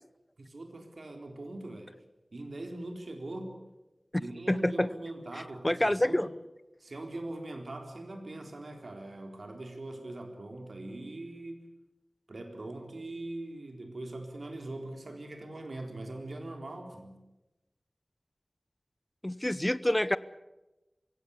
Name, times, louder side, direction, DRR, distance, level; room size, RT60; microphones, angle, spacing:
voice 1, 0.4-1.9 2.3-3.5 4.2-6.3 6.8-11.7 12.3-17.2, right 2 dB, 75° right, 4 dB, 3.9 m, -41 dB
voice 2, 4.5-4.9 5.6-6.3 19.2-20.2, left 1 dB, 20° left, 17 dB, 0.8 m, -27 dB
23.5 x 17.0 x 8.3 m, 1.0 s
wide cardioid pair, 55°, 0 cm